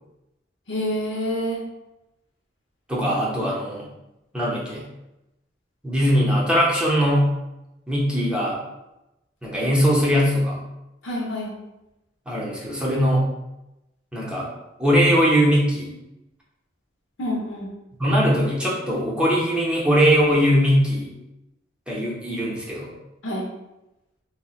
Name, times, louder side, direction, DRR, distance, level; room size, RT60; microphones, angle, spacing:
voice 1, 0.7-1.6 11.0-11.5 17.2-17.7 23.2-23.5, equal, 80° left, -2 dB, 0.8 m, -27 dB
voice 2, 2.9-3.8 4.3-4.8 5.8-7.3 7.9-8.6 9.4-10.6 12.3-13.2 14.1-14.5 14.8-15.9 18.0-21.1 21.9-22.9, equal, 5° right, -5 dB, 0.6 m, -20 dB
4.0 x 2.1 x 2.4 m, 0.94 s
head